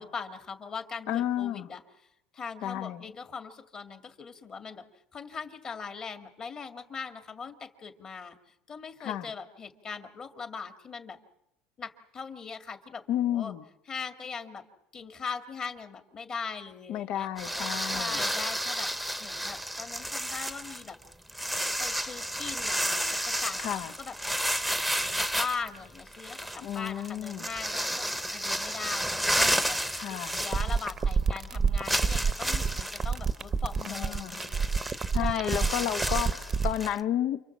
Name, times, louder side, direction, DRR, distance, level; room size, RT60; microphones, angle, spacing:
voice 1, 0.0-2.1 2.3-4.8 5.1-8.4 8.7-11.2 11.8-13.5 13.9-14.6 14.9-17.3 17.8-18.9 19.2-21.0 21.8-24.2 25.2-29.8 30.1-35.9, left 5 dB, 35° left, 2.3 m, -40 dB
voice 2, 1.1-1.7 2.6-3.0 9.0-9.3 13.1-13.6 16.9-18.2 23.6-23.9 26.6-27.4 29.9-30.4 33.9-34.4 35.1-37.4, left 11 dB, 65° left, 1.2 m, -31 dB
sound 1, 17.4-31.1 31.4-31.5 31.8-37.0, equal, ahead, 1.1 m, -32 dB
sound 2, 30.4-36.8, right 5 dB, 25° right, 0.9 m, -27 dB
29.0 x 25.0 x 7.4 m
cardioid pair, 125°, 2 cm